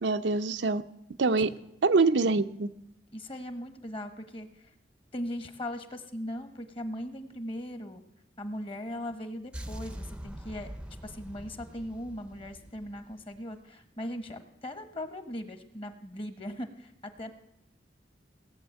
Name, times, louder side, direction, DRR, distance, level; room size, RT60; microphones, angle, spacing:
voice 1, 0.0-0.8 1.2-1.5 1.8-2.7, right 3 dB, 80° right, 10 dB, 0.6 m, -24 dB
voice 2, 3.1-4.7 5.1-8.0 8.4-10.7 11.0-17.3, left 1 dB, 30° left, 9 dB, 1.3 m, -39 dB
sound 1, 9.5-13.6, equal, 5° right, 0.6 m, -43 dB
18.0 x 7.2 x 9.0 m, 0.82 s
head